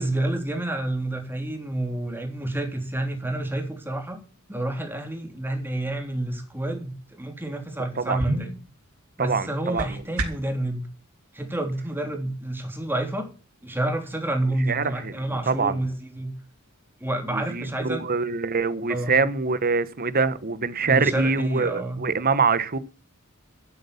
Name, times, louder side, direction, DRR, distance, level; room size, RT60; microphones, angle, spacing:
voice 1, 0.0-4.2 4.5-8.5 9.2-10.9 11.3-13.3 13.6-16.3 17.0-18.1 18.9-19.2 20.8-22.0, right 1 dB, 10° right, 3.3 m, -29 dB
sound 1, 8.1-10.6, right 2 dB, 90° right, 3.3 m, -32 dB
voice 2, 9.2-9.9 14.7-15.8 17.3-22.8, right 4 dB, 45° right, 1.1 m, -24 dB
12.0 x 8.7 x 7.0 m
head